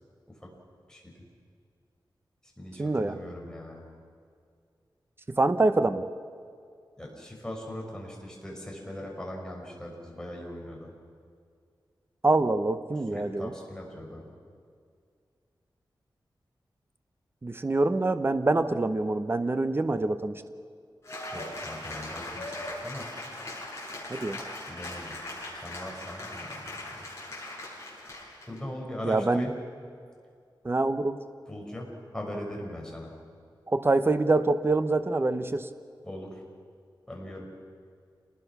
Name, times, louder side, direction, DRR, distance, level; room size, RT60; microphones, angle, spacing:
voice 1, 0.9-1.2 2.6-3.8 7.0-10.9 13.1-14.2 21.3-23.1 24.7-25.2 25.5-27.0 28.5-29.5 31.5-33.1 36.0-36.4 37.1-37.5, left 1 dB, 10° left, -1 dB, 5.9 m, -40 dB
voice 2, 2.8-3.2 5.3-6.0 12.2-13.5 17.4-20.4 24.1-24.4 29.0-29.5 30.6-31.2 33.7-35.7, right 2 dB, 30° right, 10 dB, 0.9 m, -25 dB
Cheering / Applause, 21.0-28.6, left 1 dB, 35° left, 7.5 m, -39 dB
28.5 x 20.0 x 6.1 m, 2.2 s
wide cardioid pair, 105°, 8 cm